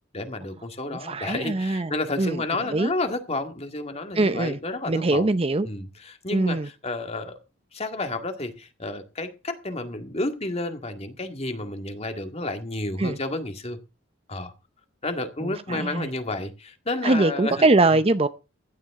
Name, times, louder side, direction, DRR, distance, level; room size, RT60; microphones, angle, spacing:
voice 1, 0.1-5.3 5.7-7.3 7.7-13.8 14.3-14.5 15.0-17.7, left 2 dB, 30° left, 1.9 m, -31 dB
voice 2, 0.9-1.9 2.2-2.4 2.7-2.9 4.1-4.6 4.9-5.7 6.3-6.7 13.0-13.2 15.4-16.1 17.0-18.3, right 2 dB, 30° right, 0.6 m, -22 dB
15.5 x 11.0 x 3.6 m
head